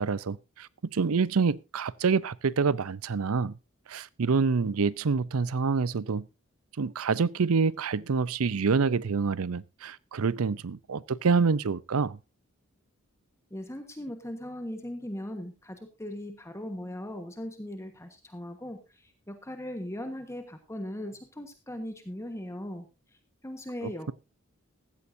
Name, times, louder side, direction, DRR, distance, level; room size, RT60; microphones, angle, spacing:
voice 1, 0.0-3.6 3.9-6.3 6.8-12.2 23.8-24.1, right 5 dB, 90° right, 0.6 m, -27 dB
voice 2, 13.5-22.9 23.4-24.1, left 1 dB, 15° left, 1.3 m, -39 dB
15.5 x 14.0 x 2.7 m
head